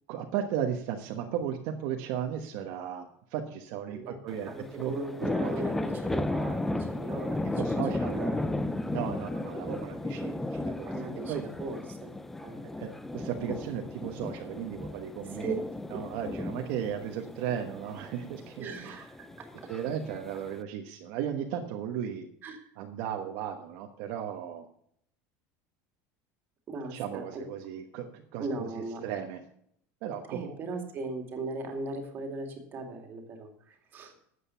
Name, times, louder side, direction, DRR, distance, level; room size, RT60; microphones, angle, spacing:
voice 1, 0.1-4.9 5.2-5.5 7.6-8.4 8.9-10.9 11.3-11.4 12.8-15.6 15.9-19.0 19.7-22.3 22.8-24.6 26.9-29.4 30.0-30.5, right 9 dB, 55° right, 3 dB, 1.2 m, -35 dB
sound 1, 4.3-20.6, left 2 dB, 5° left, 0.4 m, -35 dB
voice 2, 4.5-7.8 8.1-8.7 10.8-12.1 12.4-12.6 15.2-15.5 16.2-16.5 18.6-19.7 22.4-22.7 26.7-27.4 28.4-29.0 30.3-34.1, right 3 dB, 25° right, 4 dB, 2.3 m, -38 dB
12.5 x 8.2 x 5.7 m, 0.68 s
cardioid pair, 175°, 7 cm